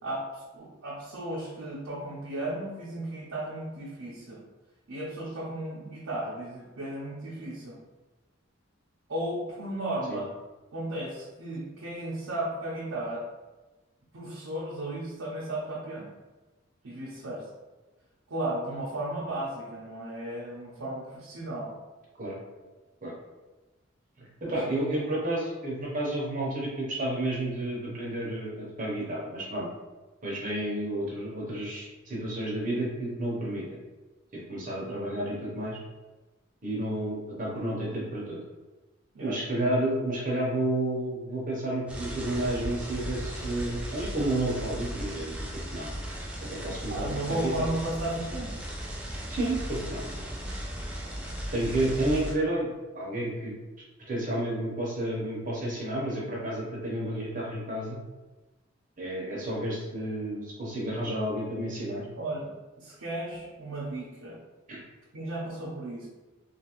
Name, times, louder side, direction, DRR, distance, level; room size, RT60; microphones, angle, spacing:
voice 1, 0.0-4.4 4.9-7.8 9.1-10.3 10.7-13.2 14.1-16.1 16.8-17.5 18.3-21.7 24.4-24.9 39.1-39.4 46.7-48.6 62.2-64.4 65.1-66.1, right 1 dB, 80° right, -7 dB, 0.7 m, -35 dB
voice 2, 24.2-29.7 30.2-33.6 34.5-35.8 36.6-38.4 39.2-45.3 45.7-45.9 46.5-47.7 49.3-50.1 51.5-52.7 52.9-53.5 54.1-58.0 59.0-62.0 64.7-64.8, right 1 dB, 40° right, -4 dB, 0.8 m, -31 dB
sound 1, 41.9-52.3, equal, 5° right, 0.3 m, -36 dB
2.8 x 2.4 x 2.9 m, 1.2 s
head